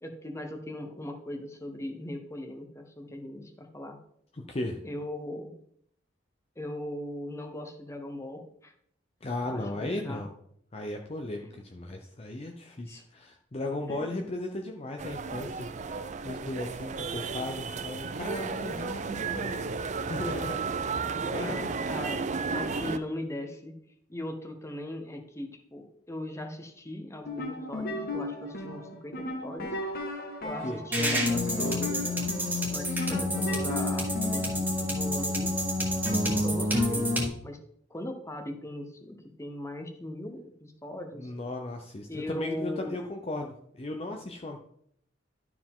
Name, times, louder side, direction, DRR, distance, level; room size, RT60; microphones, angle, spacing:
voice 1, 0.0-4.0 4.8-5.5 6.6-8.7 9.4-10.2 11.4-11.5 12.9-13.0 13.9-14.3 21.9-23.7 24.1-29.7 30.4-32.0 32.7-35.6 36.1-37.1 37.4-37.6 37.9-41.3 42.1-43.0, left 1 dB, 15° left, 5 dB, 1.0 m, -39 dB
voice 2, 4.3-4.8 9.2-10.3 10.7-19.7 20.1-21.7 30.6-30.8 41.2-44.6, left 2 dB, 30° left, 2 dB, 0.6 m, -36 dB
sound 1, 15.0-23.0, right 4 dB, 40° right, 0.4 m, -33 dB
sound 2, 27.1-34.6, left 1 dB, 55° left, 1.4 m, -36 dB
sound 3, 30.9-37.3, left 1 dB, 10° right, 1.7 m, -28 dB
12.0 x 4.8 x 3.7 m, 0.67 s
head